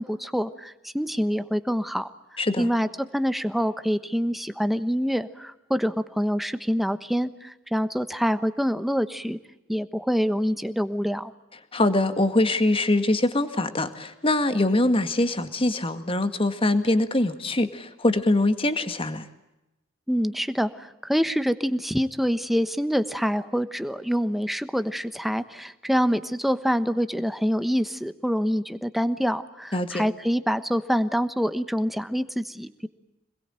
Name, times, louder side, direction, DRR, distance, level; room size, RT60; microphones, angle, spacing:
voice 1, 0.0-2.1 2.6-2.9 3.1-9.4 9.7-11.3 20.1-32.9, equal, ahead, 11 dB, 1.1 m, -26 dB
voice 2, 2.4-2.7 11.7-19.3 29.7-30.0, left 2 dB, 25° left, 9 dB, 1.9 m, -23 dB
26.5 x 21.5 x 9.0 m, 0.94 s
head